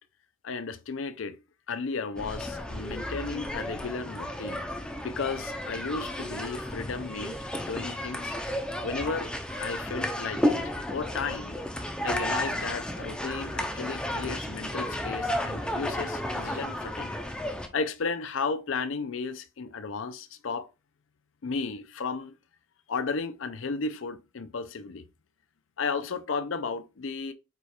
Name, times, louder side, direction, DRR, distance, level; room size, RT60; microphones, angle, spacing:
voice 1, 0.4-1.4 1.7-8.4 8.8-9.3 9.6-17.1 17.7-20.7 21.4-22.3 22.9-25.0 25.8-27.3, left 4 dB, 65° left, 0.5 m, -34 dB
sound 1, 2.2-17.7, left 1 dB, 5° left, 0.5 m, -33 dB
4.8 x 2.3 x 4.2 m
head